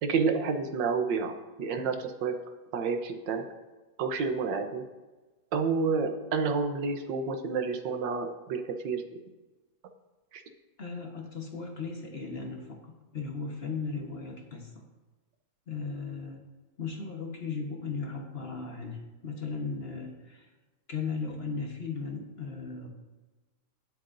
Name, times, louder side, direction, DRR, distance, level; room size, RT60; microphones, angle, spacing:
voice 1, 0.0-2.4 2.7-3.5 4.0-4.8 5.5-9.0 10.3-10.4, right 5 dB, 90° right, 7 dB, 1.6 m, -29 dB
voice 2, 10.8-14.9 15.7-16.4 16.8-20.5 20.9-22.9, left 4 dB, 40° left, 2 dB, 1.3 m, -37 dB
18.5 x 7.8 x 2.6 m, 1.2 s
omnidirectional pair, 1.9 m